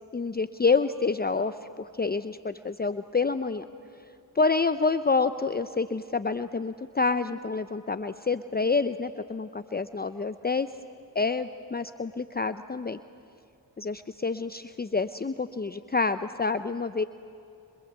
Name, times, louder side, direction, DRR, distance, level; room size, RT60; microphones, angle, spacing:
voice 1, 0.1-3.6 4.3-10.7 11.1-13.0 13.8-17.0, left 4 dB, 20° left, 11 dB, 0.8 m, -28 dB
27.5 x 25.5 x 8.2 m, 2.5 s
supercardioid pair, 40°, 43 cm